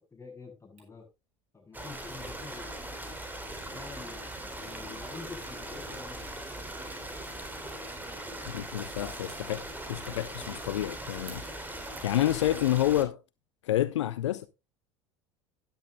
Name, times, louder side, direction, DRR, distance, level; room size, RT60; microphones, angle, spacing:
voice 1, 0.1-1.1 1.5-2.7 3.6-6.5, left 4 dB, 20° left, 7.7 m, -47 dB
Camera, 0.8-12.4, right 5 dB, 50° right, 6.2 m, -60 dB
Stream, 1.7-13.0, right 1 dB, 10° right, 3.3 m, -40 dB
voice 2, 8.5-9.6 9.9-11.4 12.0-13.2 13.6-14.5, left 13 dB, 75° left, 0.6 m, -28 dB
16.0 x 10.5 x 2.2 m
figure-of-eight pair, 70°, 15 cm